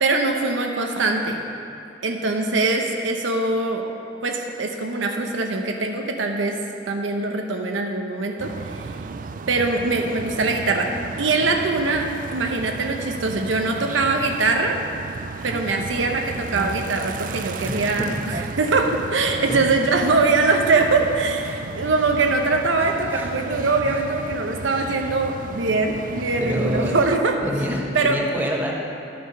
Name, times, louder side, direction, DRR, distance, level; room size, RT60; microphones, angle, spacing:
voice 1, 0.0-1.4 2.0-3.9 4.2-6.6 6.9-8.9 9.5-10.9 11.2-14.8 15.4-27.3 27.9-28.3, right 3 dB, 85° right, 3 dB, 0.8 m, -22 dB
sound 1, 8.4-27.2, right 4 dB, 45° right, 0.3 m, -34 dB
voice 2, 17.6-18.3 19.5-19.7 21.5-21.7 22.8-23.3 23.8-24.0 26.4-27.0 27.4-28.7, equal, 10° right, -2 dB, 1.0 m, -28 dB
11.5 x 6.8 x 5.4 m, 2.6 s
head